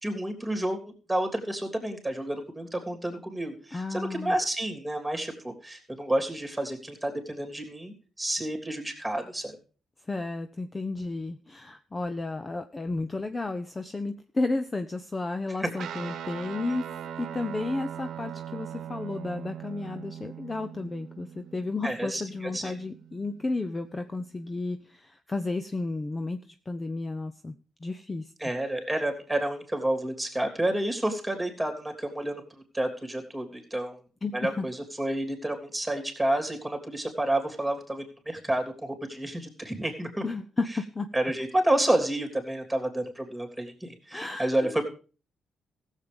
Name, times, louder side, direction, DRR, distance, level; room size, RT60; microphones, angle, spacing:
voice 1, 0.0-9.6 15.6-15.7 21.8-22.7 28.4-32.4 32.7-34.0 34.3-40.2 41.1-44.8, right 1 dB, 5° right, 3 dB, 3.3 m, -30 dB
voice 2, 3.7-4.4 10.1-16.8 17.2-26.4 26.7-27.5 27.8-28.3 34.2-34.7 40.2-41.1 44.1-44.8, left 3 dB, 25° left, 9 dB, 0.7 m, -32 dB
Guitar, 15.8-24.5, right 9 dB, 75° right, 1.1 m, -41 dB
15.0 x 7.4 x 5.2 m, 0.38 s
cardioid pair, 90°, 0 cm